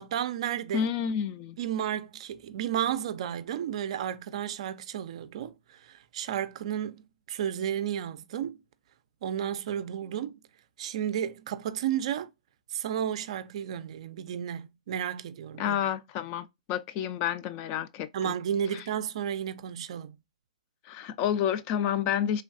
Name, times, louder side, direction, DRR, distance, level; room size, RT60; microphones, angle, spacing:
voice 1, 0.0-0.9 1.6-8.6 9.2-10.4 10.8-12.3 12.7-15.8 18.1-20.2, right 9 dB, 55° right, 0.4 m, -32 dB
voice 2, 0.7-1.6 15.6-18.3 18.7-18.9 20.8-22.4, left 9 dB, 35° left, 0.3 m, -30 dB
3.2 x 2.3 x 2.4 m
hypercardioid pair, 125°, 4 cm